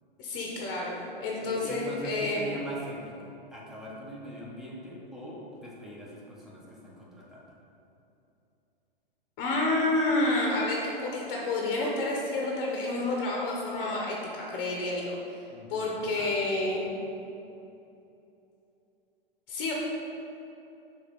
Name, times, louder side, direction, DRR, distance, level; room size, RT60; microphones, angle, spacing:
voice 1, 0.2-2.4 9.4-15.1 15.7-16.9 19.5-19.7, left 2 dB, 40° left, -2 dB, 1.1 m, -29 dB
voice 2, 1.4-7.5 15.5-16.8, right 1 dB, ahead, -6 dB, 1.3 m, -42 dB
6.2 x 3.5 x 5.4 m, 2.8 s
hypercardioid pair, 120°, 29 cm